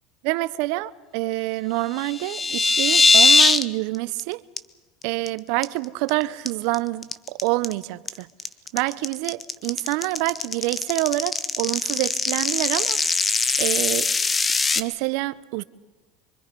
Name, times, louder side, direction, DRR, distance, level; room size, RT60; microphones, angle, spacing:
voice 1, 0.2-4.4 5.0-7.1 7.4-8.3 8.7-13.0 13.3-14.1 14.8-15.6, right 20 dB, 70° right, 0.8 m, -27 dB
sound 1, 2.0-3.6 3.9-4.2 4.6-4.7 5.0-5.3 5.6-6.1 6.5-14.8, left 4 dB, 20° left, 1.0 m, -21 dB
25.0 x 23.5 x 5.3 m
supercardioid pair, 105°, 0 cm